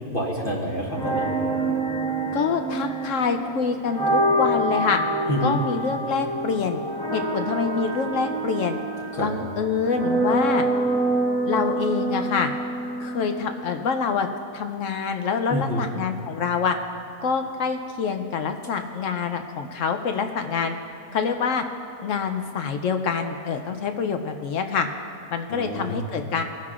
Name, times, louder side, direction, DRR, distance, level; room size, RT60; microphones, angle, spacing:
voice 1, 0.1-1.3 5.3-5.6 9.1-9.3 15.5-15.8 25.5-26.0, equal, 40° left, -2 dB, 1.2 m, -27 dB
sound 1, 0.9-13.8, right 2 dB, 5° left, 0.6 m, -26 dB
voice 2, 2.3-5.0 5.4-6.8 7.1-8.8 9.2-10.6 11.5-12.5 13.0-14.3 14.5-16.8 17.2-20.8 21.1-21.6 22.0-24.9 25.3-26.4, left 5 dB, 65° left, 6 dB, 0.9 m, -26 dB
20.5 x 10.5 x 2.4 m, 2.4 s
omnidirectional pair, 1.6 m